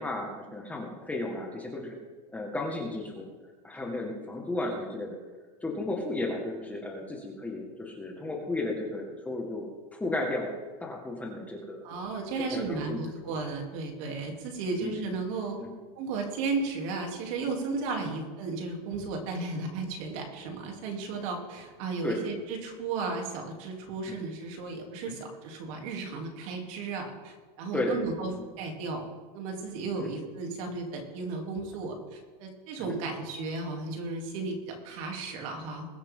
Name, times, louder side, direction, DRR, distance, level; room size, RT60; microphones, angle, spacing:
voice 1, 0.0-2.0 2.3-3.3 3.6-5.2 5.6-10.5 10.8-11.8 12.3-13.0 14.7-14.9 15.6-15.7 22.0-22.2 24.1-24.2 25.1-25.2 27.7-28.0 28.3-28.4 30.0-30.1 32.8-33.0, left 2 dB, 5° left, 0 dB, 1.8 m, -34 dB
voice 2, 11.8-15.6 15.9-28.3 28.6-29.1 29.3-35.9, right 3 dB, 60° right, 1 dB, 3.3 m, -34 dB
21.5 x 8.8 x 3.8 m, 1.4 s
supercardioid pair, 150°, 20 cm